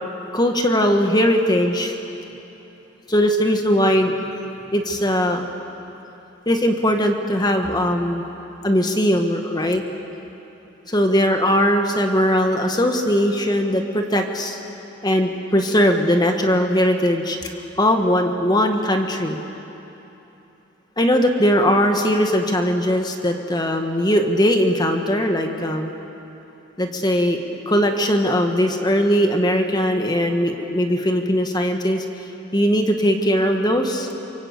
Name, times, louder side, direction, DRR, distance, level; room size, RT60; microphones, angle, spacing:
voice 1, 0.3-2.0 3.1-4.2 4.7-5.5 6.4-8.2 8.6-9.8 10.9-14.6 15.0-17.5 17.8-19.4 21.0-25.9 26.8-32.0 32.5-34.1, equal, 20° left, 4 dB, 1.6 m, -19 dB
27.5 x 24.5 x 8.2 m, 3.0 s
head